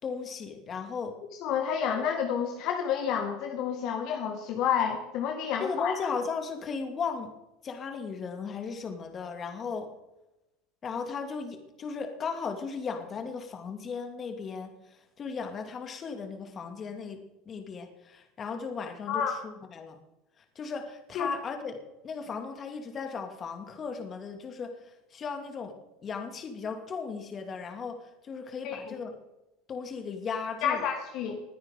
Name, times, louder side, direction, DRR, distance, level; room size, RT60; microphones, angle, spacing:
voice 1, 0.0-1.2 5.6-7.3 7.6-9.9 10.8-14.7 15.2-20.0 20.6-21.8 22.0-24.7 25.1-25.7 26.0-29.1 29.7-30.8, left 5 dB, 35° left, 5 dB, 2.3 m, -36 dB
voice 2, 1.4-6.0 19.1-19.3 21.1-21.3 28.6-28.9 30.6-31.4, left 8 dB, 60° left, 3 dB, 1.8 m, -29 dB
20.5 x 9.7 x 3.7 m, 0.97 s
hypercardioid pair, 85°, 0 cm